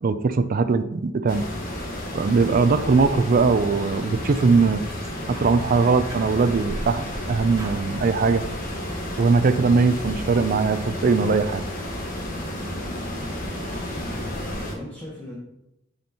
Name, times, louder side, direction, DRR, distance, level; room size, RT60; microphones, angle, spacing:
voice 1, 0.0-1.4 2.1-4.8 5.3-8.4 9.2-11.6, right 4 dB, 45° right, 12 dB, 0.4 m, -20 dB
sound 1, 1.3-14.8, left 1 dB, 45° left, 1.3 m, -32 dB
sound 2, 3.0-3.3 3.6-3.8 4.2-4.5 4.9-5.8 6.1-7.2 7.6-7.8, right 2 dB, 15° right, 0.9 m, -45 dB
voice 2, 13.9-15.3, left 1 dB, 10° left, -6 dB, 1.1 m, -38 dB
9.5 x 4.4 x 2.9 m, 0.85 s
head